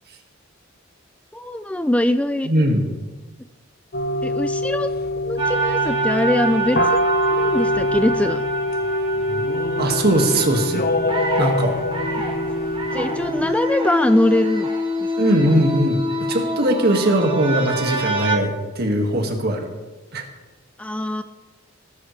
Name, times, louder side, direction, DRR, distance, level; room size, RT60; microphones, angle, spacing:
voice 1, 1.3-2.5 4.2-4.9 5.2-7.0 7.3-8.4 12.9-14.7 20.8-21.2, left 1 dB, 5° left, 10 dB, 0.3 m, -22 dB
voice 2, 2.4-2.9 9.8-10.8 11.4-11.8 15.2-16.0 16.3-19.7 20.1-20.2, right 1 dB, 55° right, 3 dB, 2.0 m, -20 dB
sound 1, 3.9-13.6, left 1 dB, 50° left, 0.8 m, -24 dB
sound 2, 5.4-18.4, right 1 dB, 25° right, 1.7 m, -26 dB
19.0 x 11.0 x 3.3 m, 1.2 s
head